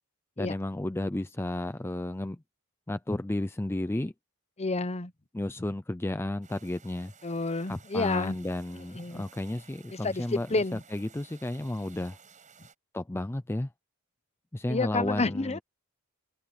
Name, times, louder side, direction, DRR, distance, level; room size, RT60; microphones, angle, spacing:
voice 1, 0.4-2.4 2.9-4.1 5.3-7.1 7.7-12.2 12.9-13.7 14.5-15.6, left 1 dB, 10° left, 0.5 m, -33 dB
voice 2, 4.6-5.1 7.2-8.3 8.7-9.2 10.0-10.8 14.7-15.6, left 3 dB, 30° left, 0.9 m, -30 dB
sound 1, 6.4-12.7, right 6 dB, 35° right, 7.8 m, -56 dB
head